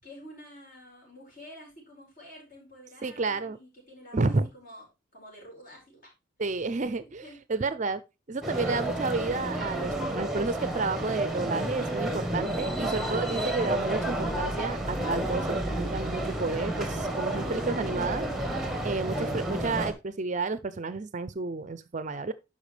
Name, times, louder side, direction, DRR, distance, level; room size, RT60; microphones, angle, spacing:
voice 1, 0.0-4.9 5.1-6.1 7.2-7.4, equal, 45° left, 5.2 m, -49 dB
voice 2, 3.0-3.6 4.1-4.5 6.4-7.2 7.5-8.0 8.3-18.3 18.8-22.3, right 3 dB, 40° right, 0.5 m, -31 dB
sound 1, 8.4-19.9, right 1 dB, ahead, 1.4 m, -31 dB
11.5 x 5.4 x 3.3 m
head